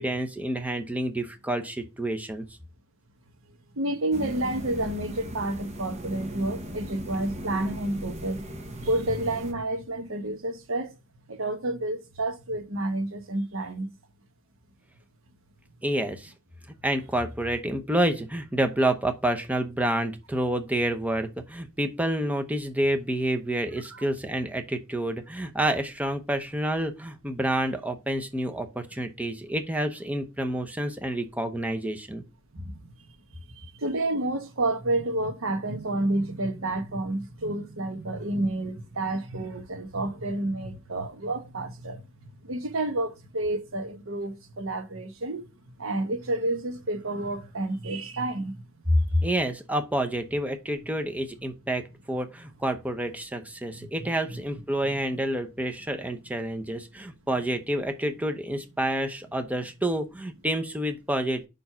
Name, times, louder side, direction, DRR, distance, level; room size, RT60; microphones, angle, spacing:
voice 1, 0.0-2.4 15.8-16.3 16.8-32.2 48.9-61.5, right 1 dB, 5° right, 0.8 m, -28 dB
voice 2, 3.8-8.4 8.8-10.9 11.3-13.9 23.9-24.0 32.6-32.8 33.8-42.0 42.4-45.4 45.8-48.5 49.2-49.3 54.8-54.9, right 2 dB, 70° right, 1.1 m, -30 dB
sound 1, 4.1-9.5, equal, 35° right, 1.1 m, -38 dB
5.3 x 4.6 x 5.7 m
head